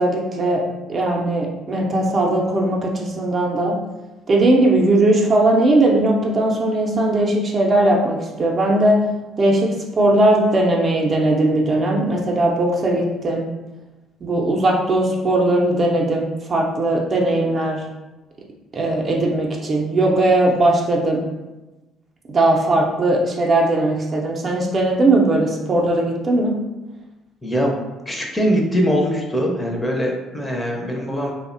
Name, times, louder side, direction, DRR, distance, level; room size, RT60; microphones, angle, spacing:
voice 1, 0.0-3.8 4.3-9.1 9.4-13.5 14.2-17.8 18.7-21.2 22.3-26.6, right 1 dB, 40° right, 0 dB, 0.4 m, -18 dB
voice 2, 27.4-27.8 28.1-31.3, equal, 15° left, 0 dB, 0.5 m, -22 dB
2.5 x 2.1 x 2.5 m, 1.1 s
hypercardioid pair, 60°, 0 cm